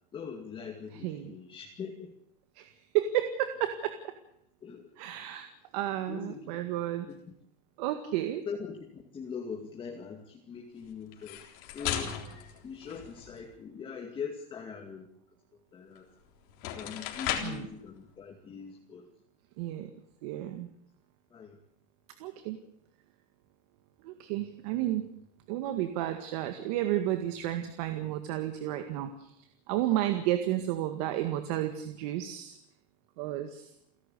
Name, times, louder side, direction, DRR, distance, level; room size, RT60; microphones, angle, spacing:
voice 1, 0.1-2.1 4.6-4.8 6.1-6.5 7.1-7.2 8.5-11.4 11.7-12.1 12.6-15.1 15.7-16.1 16.6-19.1 21.3-21.6, left 6 dB, 25° left, 1 dB, 2.3 m, -41 dB
voice 2, 0.9-1.3 2.6-2.7 2.9-4.1 5.0-5.5 5.7-7.1 7.8-8.4 17.4-17.7 19.6-19.9 20.2-20.7 22.2-22.6 24.0-25.1 25.5-29.3 29.7-32.6 33.2-33.7, right 13 dB, 70° right, 7 dB, 1.9 m, -32 dB
sound 1, 11.1-13.5 16.0-16.1 16.5-17.7, left 10 dB, 60° left, 3.8 m, -36 dB
29.5 x 12.0 x 8.4 m, 0.74 s
supercardioid pair, 150°, 21 cm